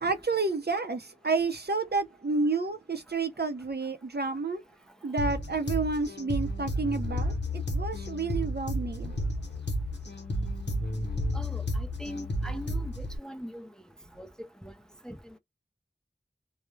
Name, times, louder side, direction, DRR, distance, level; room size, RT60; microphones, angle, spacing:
voice 1, 0.0-4.6 5.0-9.1, right 3 dB, 60° right, 0.6 m, -30 dB
sound 1, 5.2-13.2, equal, 70° left, 0.8 m, -32 dB
voice 2, 11.3-13.7 14.2-14.7 15.0-15.3, equal, 5° left, 0.5 m, -42 dB
2.3 x 2.1 x 3.1 m
wide cardioid pair, 45°, 19 cm